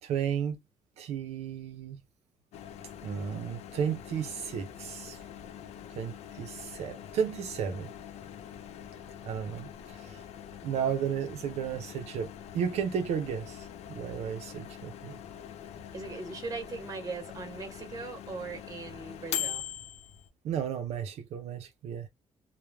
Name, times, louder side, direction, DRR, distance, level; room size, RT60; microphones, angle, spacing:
voice 1, 0.0-0.6 1.0-2.0 3.0-5.2 5.9-7.9 9.2-10.2 10.6-15.2 20.4-22.1, right 8 dB, 85° right, 0.5 m, -33 dB
Microwave oven, 2.5-20.3, left 10 dB, 85° left, 0.4 m, -43 dB
voice 2, 15.9-19.6, right 3 dB, 35° right, 1.2 m, -39 dB
3.0 x 2.1 x 2.2 m
cardioid pair, 120°, 11 cm